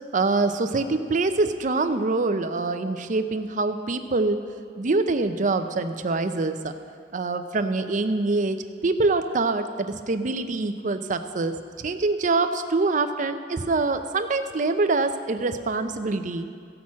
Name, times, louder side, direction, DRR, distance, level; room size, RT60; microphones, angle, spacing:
voice 1, 0.1-4.4 4.8-6.7 7.1-11.6 11.8-16.5, right 3 dB, 45° right, 8 dB, 0.6 m, -25 dB
15.0 x 5.9 x 7.4 m, 2.2 s
head